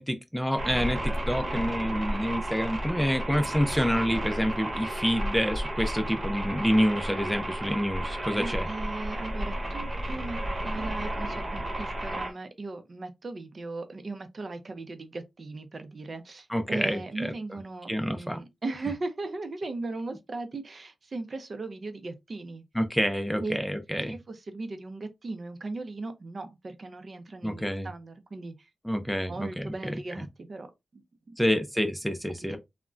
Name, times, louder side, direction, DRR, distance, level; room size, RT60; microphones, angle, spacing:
voice 1, 0.0-8.7 16.5-17.3 17.9-18.4 22.7-24.1 27.4-27.9 28.8-30.0 31.4-32.6, equal, ahead, 0.5 m, -28 dB
sound 1, 0.6-12.3, right 1 dB, 35° right, 1.2 m, -32 dB
voice 2, 8.3-10.4 10.6-22.6 23.4-23.6 24.1-28.7 29.3-30.7 30.9-31.0 31.3-31.4 32.5-32.6, right 3 dB, 50° right, 0.5 m, -38 dB
3.5 x 2.1 x 2.4 m
cardioid pair, 70°, 0 cm